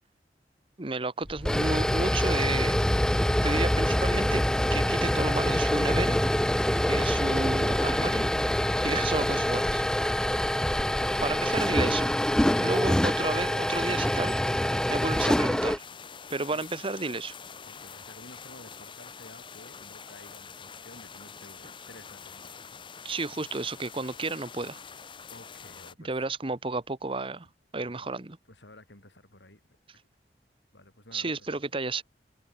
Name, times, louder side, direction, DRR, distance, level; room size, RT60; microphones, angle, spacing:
voice 1, 0.8-2.8 3.4-4.4 4.7-6.2 6.9-8.3 8.8-9.8 11.2-12.1 12.6-15.8 16.3-17.3 23.0-24.8 26.0-27.5 27.7-28.4 31.1-32.0, right 3 dB, 30° right, 1.1 m, -32 dB
sound 1, 1.2-15.8, left 1 dB, 5° left, 0.3 m, -25 dB
voice 2, 10.9-12.1 16.5-16.7 17.6-22.8 25.3-26.2 28.0-28.1 28.5-29.6 30.7-31.6, left 1 dB, 90° left, 7.3 m, -52 dB
sound 2, 15.8-25.9, left 6 dB, 30° left, 1.0 m, -46 dB
head